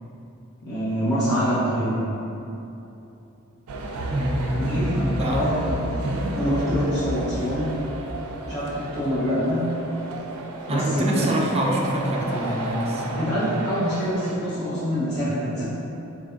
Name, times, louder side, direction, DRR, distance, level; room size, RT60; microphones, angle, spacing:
voice 1, 0.6-2.0 4.7-6.0 6.4-7.7 8.4-9.6 10.7-11.4 13.2-15.7, equal, 50° left, -12 dB, 1.0 m, -25 dB
sound 1, 3.7-14.4, right 1 dB, 90° right, 0.4 m, -32 dB
voice 2, 4.1-5.4 6.0-6.4 10.7-13.3, right 1 dB, 30° right, -2 dB, 0.5 m, -25 dB
4.2 x 2.6 x 3.3 m, 2.9 s
head